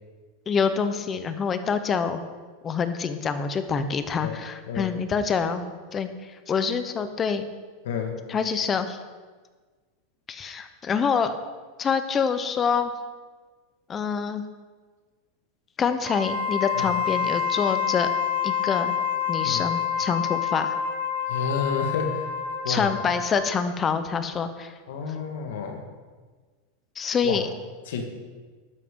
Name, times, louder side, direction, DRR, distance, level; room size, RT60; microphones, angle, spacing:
voice 1, 0.5-2.2 2.6-7.4 8.3-9.0 10.3-11.3 11.8-12.9 13.9-14.4 15.8-18.1 18.4-18.9 19.3-20.7 22.7-24.7 27.0-27.5, left 6 dB, 25° left, 10 dB, 0.8 m, -26 dB
voice 2, 7.8-8.2 16.7-16.9 19.4-19.7 21.3-22.3 22.6-22.9 24.9-25.8 27.2-27.4 27.9-28.0, left 5 dB, 80° left, 4 dB, 1.7 m, -30 dB
Wind instrument woodwind instrument, 16.0-23.5, left 8 dB, 85° right, 3.1 m, -27 dB
12.0 x 9.4 x 3.8 m, 1.4 s
supercardioid pair, 140°, 0 cm